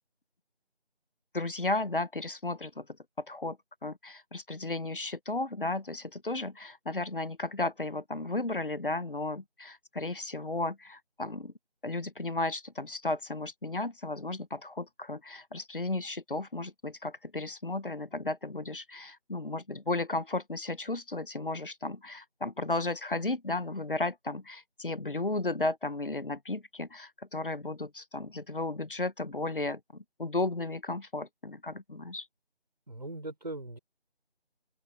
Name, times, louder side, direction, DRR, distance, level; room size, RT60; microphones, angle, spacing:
voice 1, 1.3-2.9 3.2-3.6 3.8-11.5 11.8-32.3, left 2 dB, 55° left, 1.0 m, -34 dB
voice 2, 32.9-33.8, right 2 dB, 40° right, 4.5 m, -39 dB
figure-of-eight pair, 175°, 32 cm